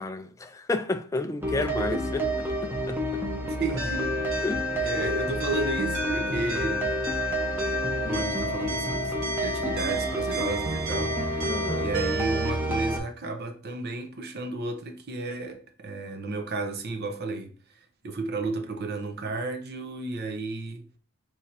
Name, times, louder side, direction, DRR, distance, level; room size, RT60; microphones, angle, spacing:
voice 1, 0.0-2.2 2.9-3.2 4.4-4.6 11.4-11.9, left 3 dB, 15° left, 0.3 m, -31 dB
sound 1, 1.4-13.0, right 1 dB, 10° right, 0.7 m, -30 dB
voice 2, 1.5-2.3 3.3-4.5 4.7-7.0 8.0-17.6 18.0-20.8, right 3 dB, 50° right, 0.7 m, -33 dB
sound 2, 3.8-12.5, left 2 dB, 75° right, 1.6 m, -32 dB
3.6 x 3.2 x 4.2 m
head